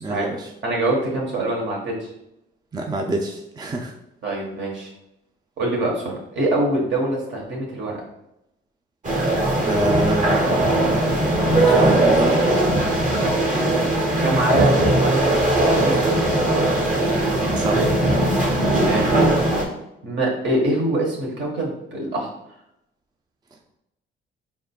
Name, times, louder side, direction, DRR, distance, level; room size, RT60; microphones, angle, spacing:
voice 1, 0.0-0.5 2.7-3.9 9.6-12.4 17.5-17.9, right 1 dB, 20° right, 2 dB, 0.5 m, -26 dB
voice 2, 0.6-2.1 4.2-4.9 5.6-8.0 13.1-13.4 14.2-15.4 15.8-16.3 18.8-19.1 20.0-22.3, right 1 dB, 65° right, -2 dB, 1.4 m, -24 dB
sound 1, 9.0-19.6, right 1 dB, 40° right, 1.1 m, -19 dB
4.4 x 3.7 x 2.3 m, 0.84 s
cardioid pair, 90°, 20 cm